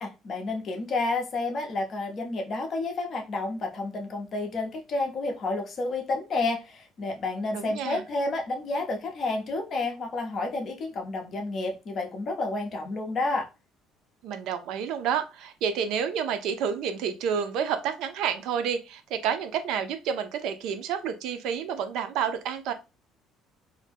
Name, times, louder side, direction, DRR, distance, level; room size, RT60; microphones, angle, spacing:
voice 1, 0.0-13.5, left 2 dB, 40° left, 0.7 m, -30 dB
voice 2, 7.5-8.0 14.2-22.7, right 7 dB, 70° right, 0.4 m, -29 dB
2.6 x 2.1 x 3.3 m
cardioid pair, 145°, 0 cm